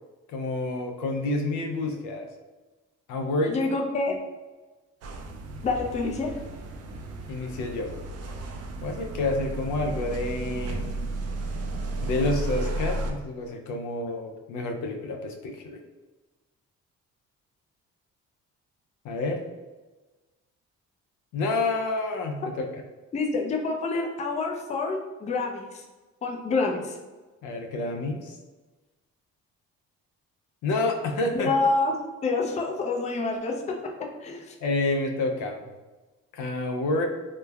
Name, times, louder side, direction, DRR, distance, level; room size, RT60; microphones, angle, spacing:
voice 1, 0.3-2.3 3.1-3.6 7.3-8.0 8.8-11.0 12.0-15.8 19.0-19.4 21.3-22.8 27.4-28.4 30.6-31.5 34.6-35.6 36.3-37.0, left 2 dB, 80° left, 2 dB, 0.5 m, -29 dB
voice 2, 3.5-4.1 5.6-6.4 23.1-25.8 26.2-27.0 31.3-32.0 32.2-33.8 34.2-34.6, left 3 dB, 25° left, 2 dB, 0.4 m, -27 dB
sound 1, 5.0-13.1, right 2 dB, 55° right, 0.4 m, -33 dB
3.1 x 2.1 x 2.2 m, 1.2 s
cardioid pair, 90°, 30 cm